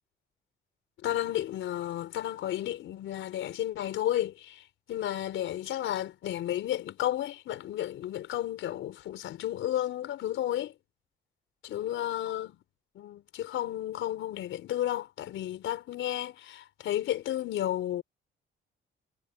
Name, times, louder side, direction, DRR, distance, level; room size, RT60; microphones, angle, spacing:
voice 1, 1.0-10.7 11.6-12.6 12.9-18.0, left 12 dB, 80° left, 4.9 m, -32 dB
cardioid pair, 90°, 20 cm